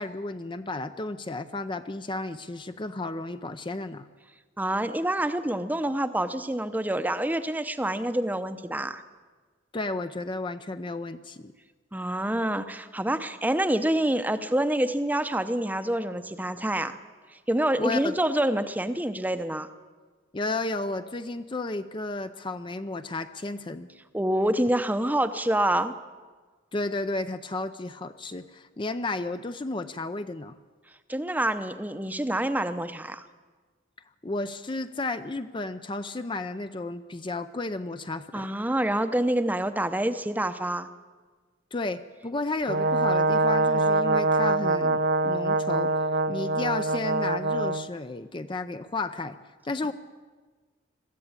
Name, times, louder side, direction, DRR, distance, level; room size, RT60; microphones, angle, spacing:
voice 1, 0.0-4.1 9.7-11.5 17.8-18.1 20.3-23.9 26.7-30.5 34.2-38.5 41.7-49.4 49.6-49.9, left 2 dB, 25° left, 10 dB, 0.6 m, -33 dB
voice 2, 4.6-9.0 11.9-17.0 17.5-19.7 24.1-25.9 31.1-33.3 38.3-40.9, right 1 dB, 10° right, 11 dB, 0.8 m, -27 dB
Brass instrument, 42.7-47.9, right 2 dB, 55° right, 0.7 m, -24 dB
22.0 x 14.5 x 8.7 m, 1.4 s
head